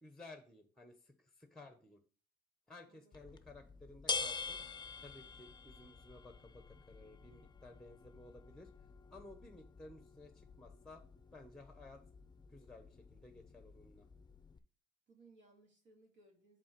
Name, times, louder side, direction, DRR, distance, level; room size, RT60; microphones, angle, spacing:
voice 1, 0.0-0.9 1.4-2.0 2.7-4.6 5.0-8.7 9.1-11.0 11.3-12.0 12.5-14.0, left 2 dB, 5° left, 7 dB, 0.9 m, -56 dB
voice 2, 2.9-3.4 15.1-16.6, right 2 dB, 70° right, 0 dB, 2.2 m, -65 dB
sound 1, 3.1-14.6, left 5 dB, 20° left, 0.5 m, -47 dB
5.3 x 3.9 x 5.9 m, 0.41 s
cardioid pair, 90°, 20 cm